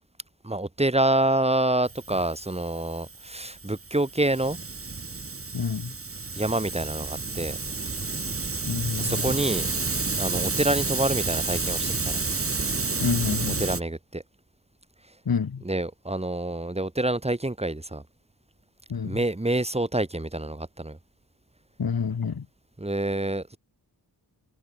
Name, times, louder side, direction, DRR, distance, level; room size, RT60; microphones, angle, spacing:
voice 1, 0.4-4.6 6.4-7.6 9.0-9.7 10.2-12.2 13.6-14.2 15.6-18.0 19.0-21.0 22.8-23.6, right 1 dB, 15° right, 2.5 m, -27 dB
Hiss, 1.9-13.8, right 3 dB, 35° right, 3.7 m, -30 dB
voice 2, 5.5-5.9 8.7-9.1 13.0-13.6 15.2-15.6 18.9-19.2 21.8-22.4, left 6 dB, 65° left, 3.3 m, -28 dB
wide cardioid pair, 105°, 39 cm